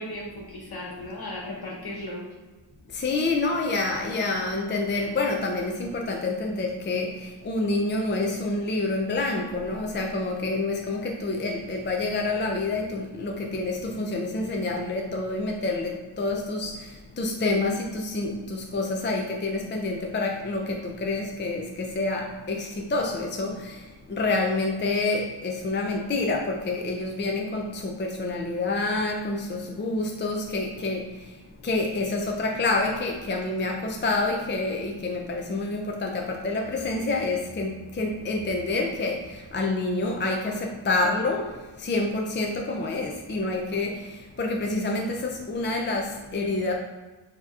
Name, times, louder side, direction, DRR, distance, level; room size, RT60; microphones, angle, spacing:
voice 1, 0.0-2.2, left 1 dB, 50° left, -3 dB, 1.3 m, -36 dB
voice 2, 2.9-46.7, left 2 dB, 25° left, 0 dB, 0.4 m, -28 dB
6.7 x 2.9 x 2.3 m, 1.3 s
wide cardioid pair, 130°, 47 cm